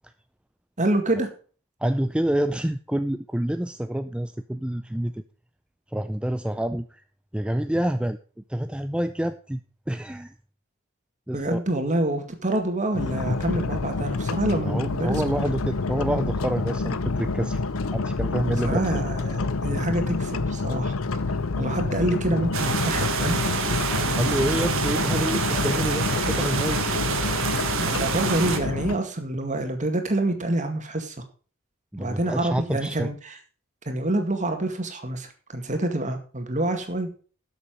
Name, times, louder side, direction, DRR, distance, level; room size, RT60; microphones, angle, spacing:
voice 1, 0.8-1.3 11.3-15.2 18.6-21.0 21.3-23.4 27.8-31.2 32.0-33.4 33.9-37.2, right 1 dB, 35° right, 5 dB, 2.0 m, -27 dB
voice 2, 1.8-5.2 5.9-7.0 7.3-8.2 8.5-9.6 9.9-10.3 11.3-11.6 14.7-17.6 17.9-18.8 24.2-26.8 31.9-33.1, right 1 dB, 5° right, 9 dB, 0.4 m, -27 dB
sound 1, 12.9-28.9, left 3 dB, 75° left, 0.8 m, -28 dB
sound 2, 22.5-28.6, right 5 dB, 65° right, 1.7 m, -27 dB
12.5 x 7.0 x 5.1 m, 0.40 s
head